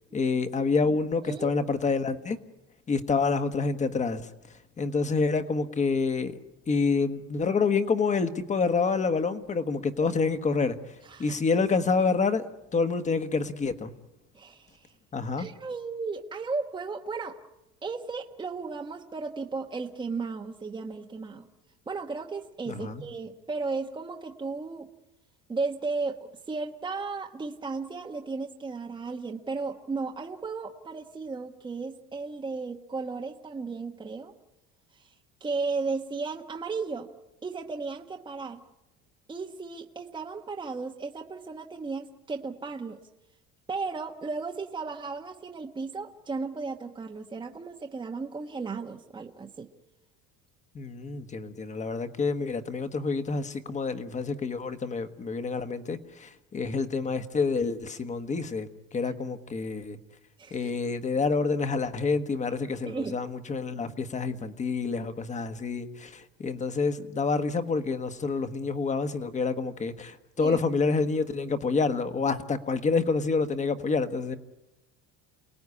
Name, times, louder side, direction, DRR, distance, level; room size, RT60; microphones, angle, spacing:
voice 1, 0.1-2.4 2.9-4.3 4.8-6.4 6.7-12.5 12.7-13.9 15.1-15.5 22.7-23.0 50.7-60.0 60.5-74.4, left 4 dB, 20° left, 1.4 m, -28 dB
voice 2, 11.0-11.4 14.3-14.9 15.4-17.4 17.8-21.5 21.9-24.9 25.5-34.3 34.9-35.1 35.4-37.1 37.4-38.6 39.3-43.0 43.7-49.7 60.4-60.7 62.8-63.2 70.4-70.6, right 4 dB, 15° right, 1.1 m, -35 dB
28.5 x 19.0 x 9.8 m
cardioid pair, 160°, 33 cm